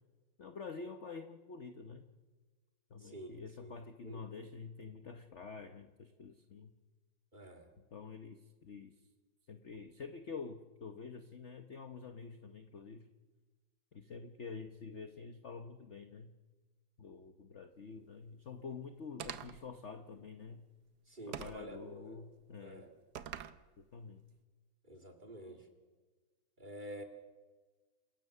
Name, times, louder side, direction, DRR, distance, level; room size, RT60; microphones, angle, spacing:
voice 1, 0.4-2.0 2.9-6.7 7.9-8.9 9.5-13.1 13.9-16.3 17.0-20.6 21.3-22.9 23.8-24.2, left 5 dB, 45° left, 7 dB, 1.0 m, -48 dB
voice 2, 3.0-3.8 4.0-4.2 7.3-7.7 21.1-22.1 22.6-22.9 24.9-25.6 26.6-27.0, right 1 dB, 25° right, 4 dB, 2.6 m, -49 dB
sound 1, 19.2-19.7 21.3-21.7 23.1-23.6, right 9 dB, 60° right, 1.3 m, -44 dB
28.0 x 17.0 x 6.7 m, 1.3 s
omnidirectional pair, 2.2 m